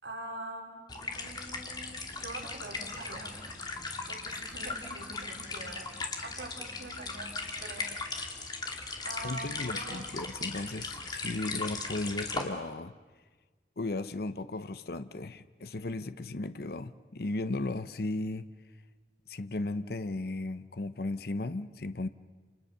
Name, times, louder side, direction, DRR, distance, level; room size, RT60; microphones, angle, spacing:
voice 1, 0.0-3.3 4.1-5.9 6.2-7.3 7.6-7.9 9.0-10.0, right 2 dB, 90° right, 2 dB, 3.4 m, -44 dB
sound 1, 0.9-12.4, left 3 dB, 25° left, 2.4 m, -38 dB
voice 2, 9.2-12.9 13.8-18.5 19.3-22.1, left 2 dB, 60° left, 12 dB, 0.8 m, -35 dB
29.0 x 28.0 x 6.7 m, 1.4 s
head